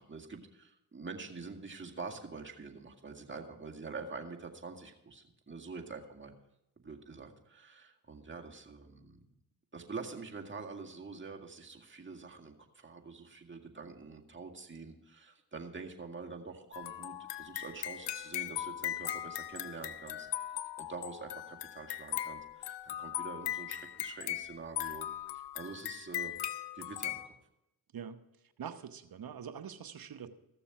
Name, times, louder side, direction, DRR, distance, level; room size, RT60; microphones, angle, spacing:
voice 1, 0.0-6.3 6.8-9.2 9.7-20.3 20.8-25.1 25.3-26.4 26.7-27.3, right 4 dB, 30° right, 1 dB, 2.0 m, -46 dB
sound 1, 16.7-27.3, left 12 dB, 85° left, 0.6 m, -39 dB
voice 2, 28.6-30.3, right 7 dB, 60° right, 11 dB, 1.0 m, -44 dB
14.5 x 6.9 x 5.9 m, 0.88 s
supercardioid pair, 45°, 40 cm